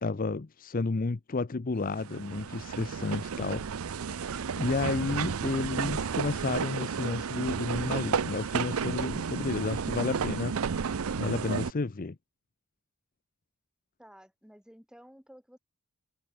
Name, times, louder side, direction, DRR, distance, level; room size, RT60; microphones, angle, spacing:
voice 1, 0.0-3.6 4.2-12.2, left 3 dB, 40° left, 0.6 m, -32 dB
sound 1, 1.9-11.7, right 6 dB, 85° right, 0.6 m, -32 dB
voice 2, 14.0-15.6, equal, 5° right, 3.3 m, -53 dB
head